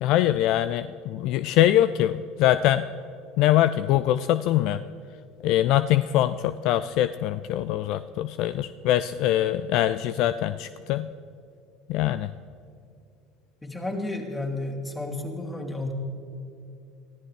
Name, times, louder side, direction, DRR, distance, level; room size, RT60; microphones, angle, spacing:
voice 1, 0.0-2.9 3.4-4.8 5.4-11.1 11.9-12.3, left 13 dB, 55° left, 14 dB, 0.4 m, -23 dB
voice 2, 13.6-15.9, left 2 dB, 15° left, 1 dB, 3.1 m, -32 dB
24.0 x 15.0 x 3.4 m, 2.6 s
figure-of-eight pair, 65°, 0 cm